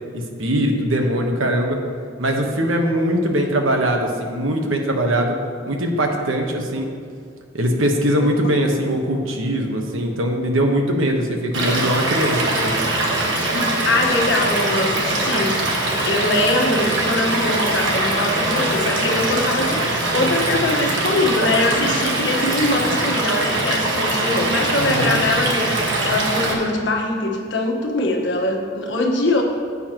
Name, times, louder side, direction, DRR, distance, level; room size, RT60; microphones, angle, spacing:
voice 1, 0.1-1.8 2.2-5.3 5.7-6.9 7.5-12.9 24.8-25.2, right 1 dB, 80° right, 2 dB, 1.2 m, -21 dB
voice 2, 8.2-8.6 13.5-19.9 20.1-29.4, left 2 dB, 60° left, 0 dB, 1.4 m, -22 dB
Stream / Liquid, 11.5-26.5, right 2 dB, 60° right, 1.4 m, -22 dB
13.5 x 8.5 x 3.0 m, 2.2 s
head